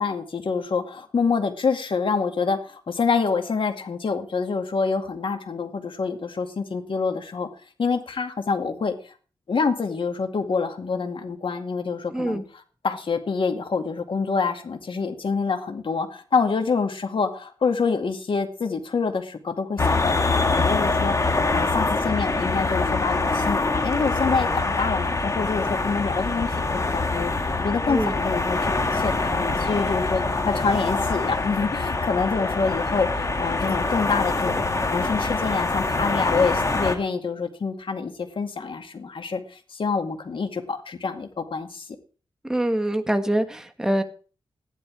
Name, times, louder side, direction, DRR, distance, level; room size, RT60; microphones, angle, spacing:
voice 1, 0.0-7.5 7.8-9.1 9.5-12.4 12.8-27.3 27.6-34.7 34.9-41.9, left 5 dB, 65° left, 6 dB, 2.2 m, -26 dB
voice 2, 12.1-12.4 27.9-28.2 42.4-44.0, right 1 dB, 5° right, 6 dB, 1.6 m, -24 dB
sound 1, 19.8-37.0, left 3 dB, 35° left, 1.8 m, -24 dB
14.5 x 11.0 x 4.7 m, 0.38 s
wide cardioid pair, 100°, 9 cm